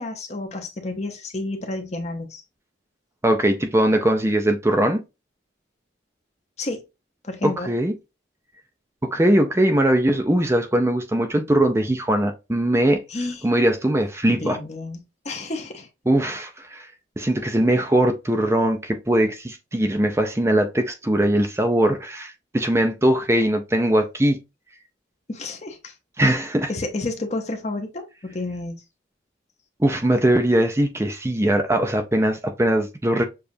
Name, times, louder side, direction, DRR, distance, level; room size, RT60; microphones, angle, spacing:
voice 1, 0.0-2.4 6.6-6.8 7.2-7.7 13.1-13.5 14.3-15.0 15.2-15.9 25.3-25.9 26.7-28.7, left 2 dB, 35° left, 0.8 m, -30 dB
voice 2, 3.2-5.0 7.4-7.9 9.0-13.0 13.4-14.6 16.1-16.9 17.2-24.4 26.2-26.7 29.8-33.2, right 1 dB, 15° right, 0.5 m, -20 dB
6.8 x 2.4 x 2.7 m
head